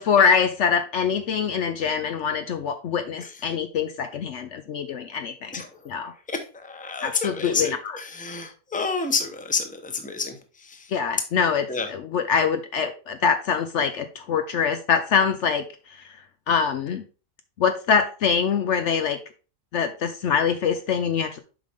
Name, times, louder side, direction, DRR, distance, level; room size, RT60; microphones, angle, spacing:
voice 1, 0.0-5.5 5.9-6.1 7.0-8.0 10.9-15.6 16.5-17.0 17.6-19.2 19.7-21.4, left 6 dB, 65° left, 8 dB, 0.9 m, -24 dB
voice 2, 6.3-10.4 10.6-10.9 11.7-11.9, left 4 dB, 5° left, 6 dB, 0.8 m, -29 dB
7.3 x 5.2 x 3.5 m, 0.35 s
omnidirectional pair, 1.4 m